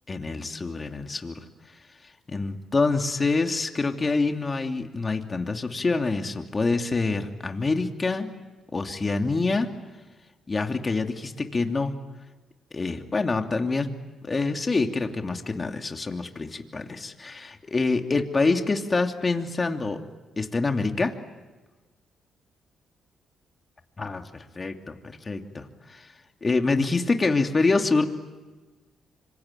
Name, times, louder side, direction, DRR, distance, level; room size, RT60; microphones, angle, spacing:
voice 1, 0.1-1.4 2.3-8.3 8.7-9.7 10.5-11.9 12.7-13.9 14.2-20.0 20.4-21.1 24.0-26.1 26.4-28.0, left 3 dB, 30° left, 4 dB, 2.8 m, -26 dB
26.5 x 24.5 x 9.1 m, 1.3 s
cardioid pair, 75°, 0 cm